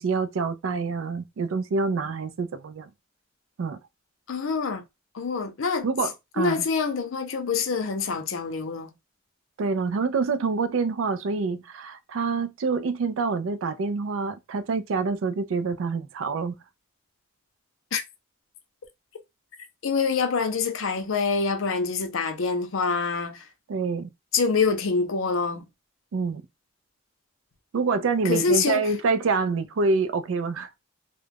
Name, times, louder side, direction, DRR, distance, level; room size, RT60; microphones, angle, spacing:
voice 1, 0.0-2.9 3.6-3.8 5.8-6.6 9.6-16.6 23.7-24.1 26.1-26.4 27.7-30.7, right 4 dB, 80° right, 0.4 m, -26 dB
voice 2, 4.3-4.8 5.1-5.9 6.4-8.9 17.9-18.0 19.8-23.5 24.3-25.7 28.2-28.9, left 5 dB, 80° left, 0.6 m, -25 dB
2.3 x 2.0 x 3.3 m
head